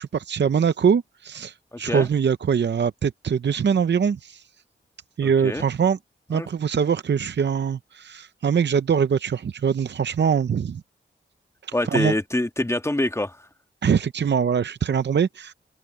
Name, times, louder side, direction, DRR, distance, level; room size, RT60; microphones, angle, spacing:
voice 1, 0.0-4.4 5.2-6.0 6.3-10.8 11.9-12.1 13.8-15.5, right 7 dB, 65° right, 0.6 m, -23 dB
voice 2, 1.7-2.1 5.2-5.6 6.3-6.5 11.7-13.4, left 1 dB, 15° left, 1.7 m, -25 dB
wide cardioid pair, 70°, 20 cm